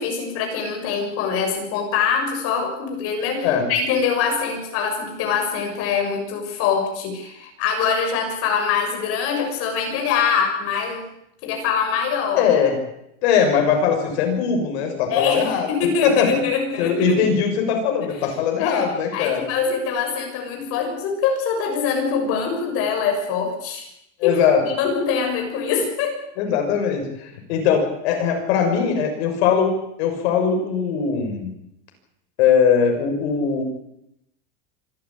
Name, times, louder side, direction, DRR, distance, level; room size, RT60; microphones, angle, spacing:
voice 1, 0.0-11.0 11.4-12.5 15.1-17.2 18.6-18.9 19.1-23.9 24.2-24.3 24.6-26.2, left 6 dB, 40° left, 3 dB, 6.7 m, -24 dB
voice 2, 12.3-12.8 13.2-15.7 16.0-16.3 16.8-19.4 24.2-24.6 26.4-31.5 32.4-33.6, left 7 dB, 60° left, 4 dB, 6.7 m, -20 dB
26.0 x 13.5 x 9.0 m, 0.80 s
supercardioid pair, 170°, 36 cm